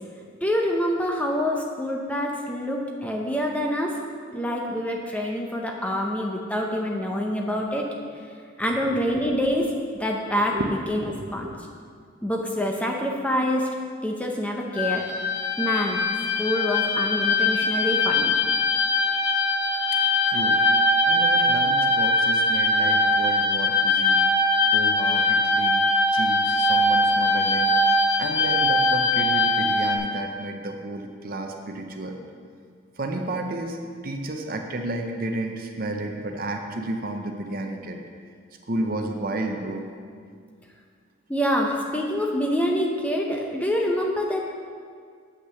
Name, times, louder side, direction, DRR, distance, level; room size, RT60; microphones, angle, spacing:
voice 1, 0.4-4.0 4.3-7.9 8.6-9.7 10.0-10.6 10.9-11.0 11.3-11.5 12.2-13.7 14.0-15.0 15.6-16.1 16.4-18.3 41.3-44.4, equal, 5° left, 0 dB, 0.7 m, -26 dB
voice 2, 10.9-11.6 20.3-20.6 21.0-24.2 24.7-25.8 26.1-27.7 28.2-32.2 33.0-33.8 34.0-38.0 38.7-39.9, right 1 dB, 45° right, 4 dB, 0.7 m, -31 dB
sound 1, 14.7-30.0, left 2 dB, 50° left, 2.3 m, -21 dB
8.1 x 6.0 x 6.9 m, 2.1 s
head